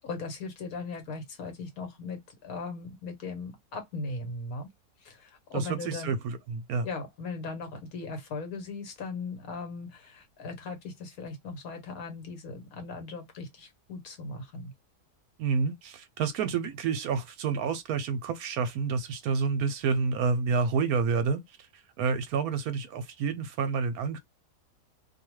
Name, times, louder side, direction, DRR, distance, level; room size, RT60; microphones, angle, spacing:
voice 1, 0.0-4.7 5.0-6.1 6.8-14.7, left 3 dB, 65° left, 1.3 m, -38 dB
voice 2, 5.5-6.9 15.4-24.2, right 5 dB, 75° right, 1.0 m, -29 dB
2.7 x 2.2 x 3.0 m
omnidirectional pair, 1.7 m